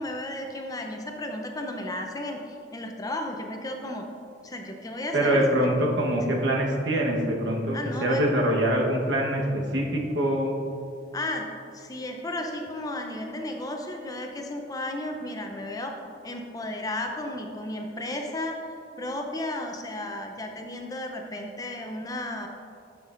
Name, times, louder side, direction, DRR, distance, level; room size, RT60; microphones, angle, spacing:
voice 1, 0.0-4.1 4.4-5.7 7.7-8.3 11.1-11.5 11.7-22.5, left 1 dB, 20° left, 3 dB, 0.6 m, -34 dB
voice 2, 5.1-10.6, right 1 dB, 80° right, -1 dB, 1.2 m, -24 dB
12.5 x 5.9 x 2.5 m, 2.4 s
head